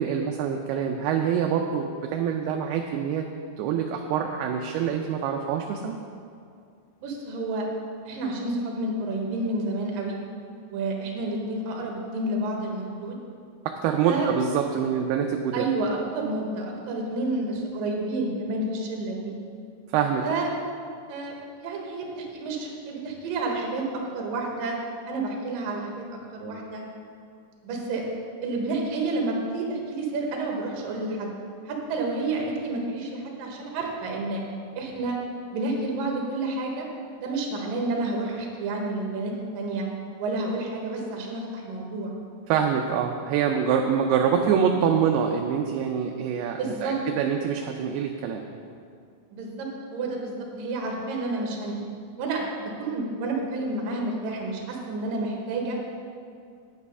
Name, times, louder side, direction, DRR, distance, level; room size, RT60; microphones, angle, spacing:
voice 1, 0.0-3.2 3.6-6.0 13.8-15.7 19.9-20.2 42.5-48.4, right 7 dB, 80° right, 3 dB, 2.4 m, -25 dB
voice 2, 7.0-7.7 8.1-10.2 10.7-13.2 14.0-14.3 15.5-19.3 20.2-20.5 21.1-24.8 25.1-26.1 26.3-26.8 27.6-28.0 28.4-31.3 31.7-34.4 34.8-35.2 35.5-36.9 37.2-39.9 40.2-42.1 46.6-47.0 49.3-51.8 52.2-55.8, right 2 dB, 65° right, 0 dB, 2.8 m, -30 dB
10.5 x 8.5 x 5.4 m, 2.3 s
omnidirectional pair, 4.9 m